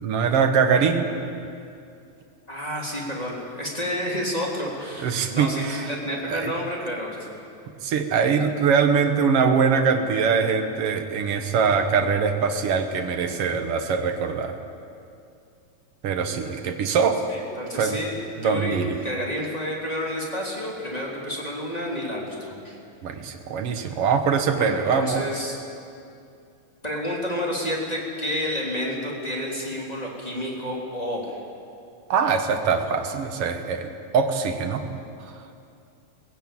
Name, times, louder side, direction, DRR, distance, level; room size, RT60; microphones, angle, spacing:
voice 1, 0.0-1.1 5.0-5.8 6.2-6.5 7.8-14.6 16.0-17.2 17.7-18.0 18.4-18.9 23.0-25.3 32.1-34.8, right 6 dB, 60° right, 6 dB, 1.7 m, -23 dB
voice 2, 2.5-7.4 17.3-18.8 19.0-22.8 24.6-25.6 26.8-31.4, equal, 10° left, -3 dB, 2.8 m, -30 dB
20.0 x 15.5 x 8.9 m, 2.5 s
omnidirectional pair, 3.9 m